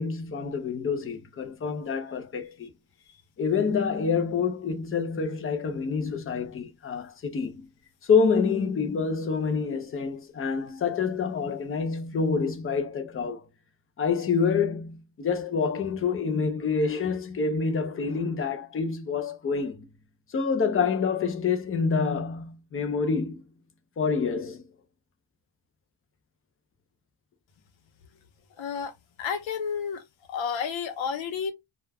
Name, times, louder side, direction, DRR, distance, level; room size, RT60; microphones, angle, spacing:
voice 1, 0.0-2.7 3.4-7.7 8.1-13.4 14.0-19.9 20.3-23.4 24.0-24.6, left 5 dB, 30° left, 0.4 m, -27 dB
voice 2, 28.6-28.9 29.2-30.0 30.3-31.5, left 6 dB, 85° left, 0.8 m, -30 dB
2.3 x 2.1 x 3.3 m
wide cardioid pair, 170°, 45 cm